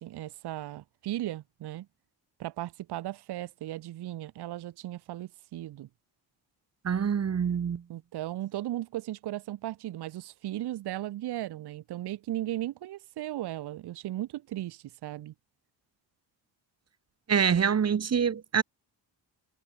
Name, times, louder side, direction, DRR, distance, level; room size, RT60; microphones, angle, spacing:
voice 1, 0.0-1.9 2.4-5.9 7.9-15.3, right 14 dB, 60° right, 0.8 m, -36 dB
voice 2, 6.8-7.8 17.3-18.6, right 7 dB, 35° right, 1.2 m, -25 dB
cardioid pair, 100°, 45 cm